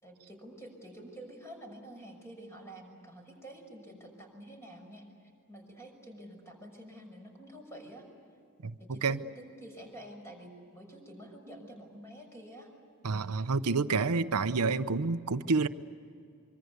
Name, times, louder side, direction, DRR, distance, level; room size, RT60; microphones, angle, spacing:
voice 1, 0.0-8.1 8.8-12.7, right 1 dB, 10° left, 2 dB, 6.0 m, -49 dB
voice 2, 8.6-9.2 13.0-15.7, right 4 dB, 85° right, 10 dB, 0.8 m, -29 dB
25.0 x 25.0 x 8.2 m, 2.5 s
head